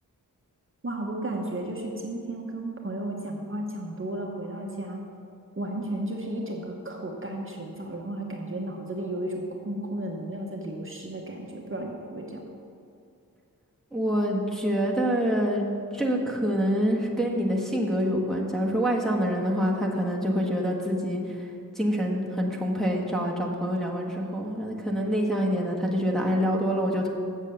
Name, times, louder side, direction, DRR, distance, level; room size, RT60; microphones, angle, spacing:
voice 1, 0.8-5.0 5.6-12.4, right 1 dB, 35° right, 0 dB, 1.0 m, -33 dB
voice 2, 13.9-15.6 15.9-21.5 21.7-27.1, equal, ahead, -3 dB, 1.3 m, -26 dB
7.4 x 7.3 x 6.8 m, 2.4 s
wide cardioid pair, 95°, 35 cm